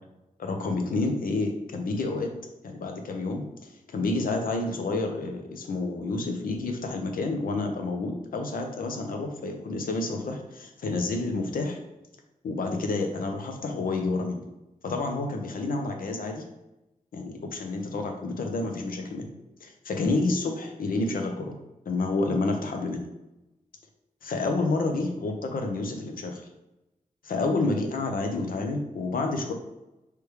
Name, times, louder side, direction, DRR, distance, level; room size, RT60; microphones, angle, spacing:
voice 1, 0.4-2.3 2.6-3.5 3.9-11.8 12.4-14.4 14.8-16.4 17.1-19.3 19.6-21.6 21.9-23.0 24.2-26.4 27.2-29.5, left 3 dB, 80° left, 3 dB, 0.8 m, -29 dB
3.3 x 3.2 x 4.8 m, 0.95 s
cardioid pair, 80°, 14 cm